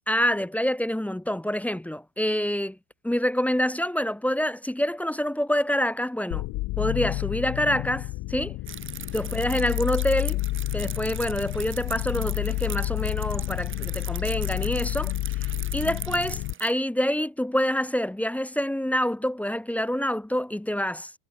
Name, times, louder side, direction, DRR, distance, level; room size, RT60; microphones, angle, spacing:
voice 1, 0.1-2.8 3.0-6.5 6.8-8.6 9.1-10.4 10.7-15.1 15.7-21.1, equal, 5° left, 1.4 m, -26 dB
sound 1, 6.3-16.5, left 20 dB, 50° left, 1.4 m, -30 dB
sound 2, 8.7-16.7, right 7 dB, 25° right, 5.3 m, -40 dB
supercardioid pair, 140°, 49 cm